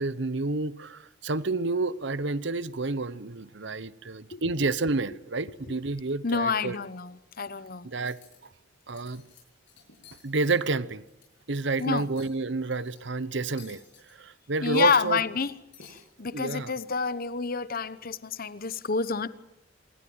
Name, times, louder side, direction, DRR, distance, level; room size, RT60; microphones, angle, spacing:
voice 1, 0.0-6.8 7.8-8.2 8.9-9.2 10.2-11.0 11.5-13.8 14.1-15.2 16.3-16.7, right 3 dB, 60° right, 1.0 m, -29 dB
voice 2, 6.2-7.9 11.8-12.0 14.6-19.3, left 5 dB, 50° left, 0.9 m, -28 dB
Cutlery silverware, 7.9-8.4 8.8-9.4 9.7-11.3 11.6-12.3 12.7-13.0 13.6-14.1 14.6-15.4 15.7-16.0, left 5 dB, 65° left, 8.0 m, -53 dB
27.0 x 19.0 x 8.8 m
head